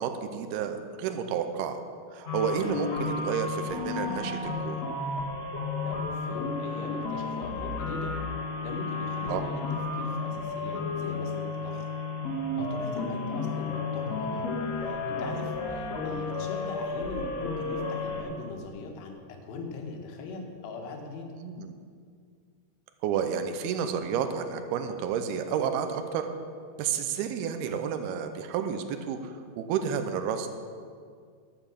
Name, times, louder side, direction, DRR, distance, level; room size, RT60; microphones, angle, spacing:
voice 1, 0.0-1.8 2.1-4.8 9.3-9.4 21.4-21.7 23.0-26.3 26.8-30.5, right 7 dB, 80° right, 7 dB, 2.5 m, -31 dB
sound 1, 2.3-18.2, left 3 dB, 55° left, 2.1 m, -32 dB
voice 2, 5.8-8.2 8.6-11.9 12.6-14.5 14.8-21.3, left 3 dB, 80° left, 3 dB, 3.3 m, -40 dB
11.0 x 6.9 x 7.3 m, 2.1 s
omnidirectional pair, 4.9 m